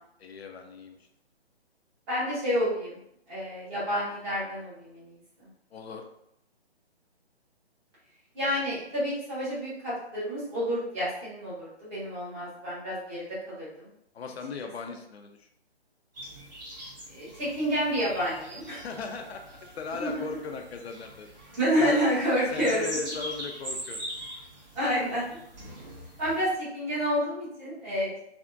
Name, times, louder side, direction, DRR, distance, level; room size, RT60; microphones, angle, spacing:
voice 1, 0.2-1.0 5.7-6.1 14.1-15.5 18.8-19.4 19.8-21.3 21.8-22.0 22.5-24.2, left 5 dB, 70° left, 4 dB, 0.5 m, -38 dB
voice 2, 2.1-3.0 3.3-5.1 8.3-13.9 17.1-18.8 20.0-20.2 21.5-22.9 24.7-25.4 26.2-28.2, equal, 15° right, -9 dB, 0.7 m, -29 dB
sound 1, 16.2-26.5, equal, 40° right, 1.0 m, -42 dB
3.4 x 2.1 x 2.4 m, 0.76 s
figure-of-eight pair, 145°, 33 cm